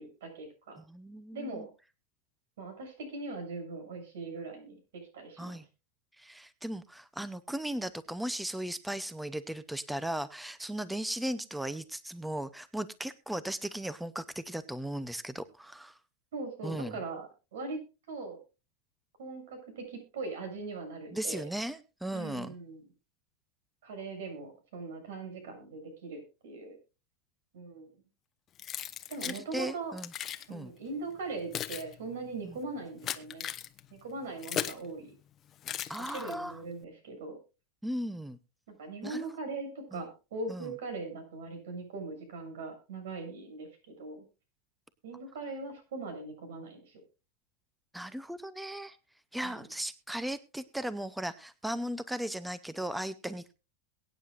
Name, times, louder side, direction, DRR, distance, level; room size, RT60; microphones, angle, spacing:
voice 1, 0.0-0.8 1.3-1.7 2.6-5.6 16.3-17.8 18.1-18.4 19.2-21.5 22.1-22.8 23.8-26.8 27.5-27.9 29.1-30.0 30.5-33.5 33.9-35.1 36.0-37.4 38.7-44.3 45.0-47.0 49.4-49.6, right 3 dB, 90° right, 6 dB, 6.9 m, -40 dB
voice 2, 0.9-1.7 5.4-5.6 6.2-16.0 16.6-17.0 21.1-22.5 29.2-30.1 30.5-30.7 32.4-32.5 35.9-36.6 37.8-38.4 39.0-39.3 39.9-40.0 40.5-40.7 47.9-49.0 49.3-53.5, right 1 dB, ahead, 15 dB, 0.5 m, -37 dB
Keys jangling, 28.6-29.4 30.0-30.5 31.2-34.9 35.6-36.5, left 10 dB, 25° left, 0.8 m, -38 dB
22.5 x 9.3 x 2.4 m, 0.30 s
supercardioid pair, 165°, 0 cm